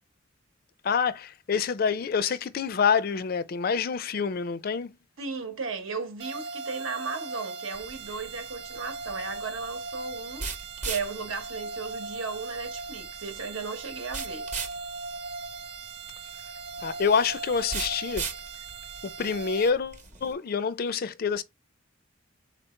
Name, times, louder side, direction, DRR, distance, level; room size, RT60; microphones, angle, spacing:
voice 1, 0.8-4.9 16.8-18.3 19.0-21.4, left 6 dB, 45° left, 0.4 m, -27 dB
voice 2, 5.2-10.5 10.8-14.5, right 4 dB, 75° right, 1.1 m, -35 dB
sound 1, 6.2-19.7, right 3 dB, 55° right, 0.6 m, -39 dB
sound 2, 7.7-20.3, right 4 dB, 35° right, 0.9 m, -40 dB
4.1 x 2.9 x 4.3 m
head